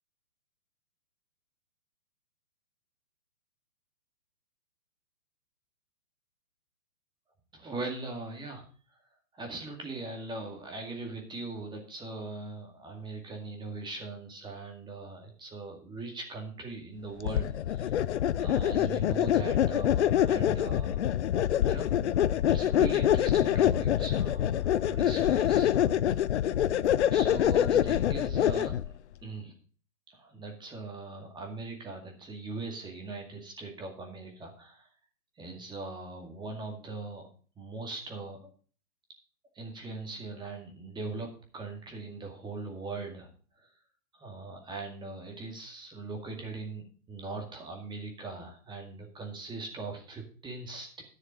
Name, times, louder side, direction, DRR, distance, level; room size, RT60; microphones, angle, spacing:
voice 1, 7.5-8.7 9.3-18.0 18.4-21.2 21.7-22.2 22.5-26.0 27.1-28.8 29.2-29.5 30.1-34.9 35.4-37.3 37.6-38.5 39.6-43.3 44.1-51.0, right 3 dB, 10° right, 2 dB, 2.1 m, -40 dB
sound 1, 17.2-28.9, left 11 dB, 50° left, 0.5 m, -25 dB
10.5 x 6.5 x 6.6 m, 0.42 s
hypercardioid pair, 130°, 45 cm